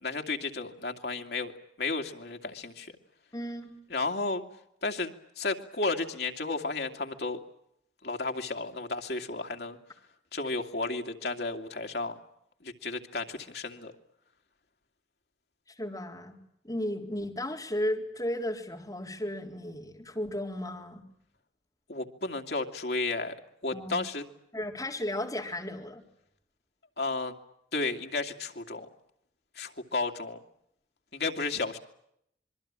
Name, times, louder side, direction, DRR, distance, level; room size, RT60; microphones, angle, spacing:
voice 1, 0.0-1.5 1.8-2.9 3.9-4.4 4.8-5.1 5.4-7.4 8.0-9.8 10.3-12.1 12.6-13.9 21.9-23.4 23.6-24.2 27.0-27.3 27.7-28.9 29.6-30.4 31.1-31.8, left 3 dB, 65° left, 4 dB, 2.4 m, -33 dB
voice 2, 3.3-3.7 15.7-16.4 16.6-21.0 23.7-24.0 24.5-26.0, left 1 dB, 20° left, 0 dB, 3.9 m, -34 dB
26.5 x 23.0 x 8.8 m, 0.75 s
head